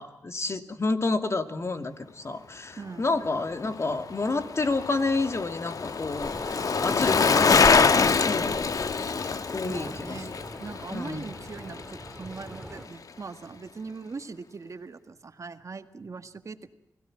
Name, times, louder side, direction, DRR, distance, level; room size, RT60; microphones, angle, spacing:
voice 1, 0.0-6.4 6.8-8.7 9.5-10.2 10.9-11.3, left 3 dB, 45° left, 8 dB, 2.3 m, -30 dB
voice 2, 2.8-3.2 9.6-16.7, right 4 dB, 55° right, 9 dB, 1.8 m, -41 dB
Bicycle, 3.7-12.1 12.4-12.5, left 5 dB, 65° left, 1.2 m, -25 dB
sound 1, 6.2-12.9, equal, ahead, 3.6 m, -41 dB
29.0 x 17.5 x 7.6 m, 0.85 s
cardioid pair, 55°, 6 cm